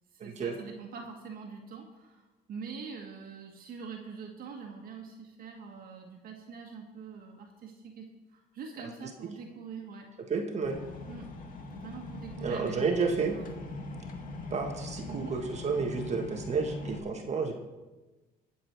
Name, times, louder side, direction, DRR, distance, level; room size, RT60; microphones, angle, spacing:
voice 1, 0.1-10.1 11.1-11.3 11.7-13.6 15.0-15.3, right 5 dB, 60° right, 1 dB, 1.8 m, -44 dB
voice 2, 10.3-10.8 12.4-13.4 14.5-17.5, right 4 dB, 40° right, 3 dB, 1.5 m, -31 dB
sound 1, 10.6-17.0, left 2 dB, 55° left, 2.0 m, -41 dB
20.0 x 7.4 x 4.6 m, 1.2 s
cardioid pair, 110°, 17 cm